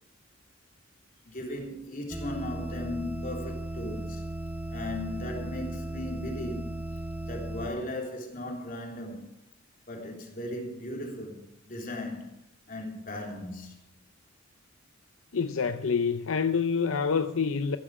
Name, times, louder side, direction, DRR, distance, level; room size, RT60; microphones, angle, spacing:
voice 1, 1.2-4.2 4.7-6.8 7.2-9.3 9.9-12.4 12.7-13.9, left 1 dB, 40° left, 3.3 m, -37 dB
sound 1, 2.1-7.7, right 1 dB, 10° right, 0.7 m, -36 dB
voice 2, 15.3-17.8, left 5 dB, 75° left, 0.6 m, -27 dB
15.0 x 12.5 x 4.9 m
head